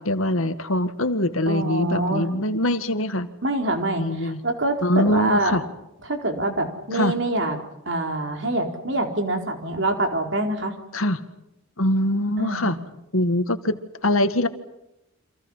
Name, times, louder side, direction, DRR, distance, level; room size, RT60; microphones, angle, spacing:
voice 1, 0.0-3.3 4.0-4.4 4.8-5.6 6.9-7.1 10.9-11.2 11.8-12.8 13.1-14.5, left 1 dB, 75° left, 9 dB, 2.0 m, -23 dB
voice 2, 1.5-2.3 3.4-5.6 6.1-7.6 7.9-10.7 12.4-12.7, right 2 dB, 55° right, 4 dB, 4.4 m, -25 dB
29.5 x 27.0 x 5.8 m, 0.86 s
head